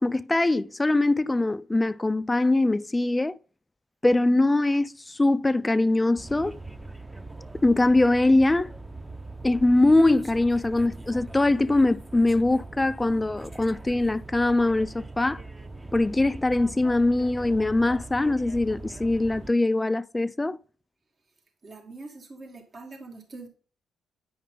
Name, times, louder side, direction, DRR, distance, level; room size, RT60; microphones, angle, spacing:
voice 1, 0.0-3.4 4.0-6.6 7.6-8.7 9.4-15.4 15.9-20.6, left 2 dB, 20° left, 0.4 m, -22 dB
sound 1, 6.2-19.5, right 2 dB, 15° right, 0.9 m, -41 dB
voice 2, 21.6-23.5, right 3 dB, 45° right, 2.4 m, -43 dB
9.4 x 5.5 x 3.8 m
supercardioid pair, 60°, 0 cm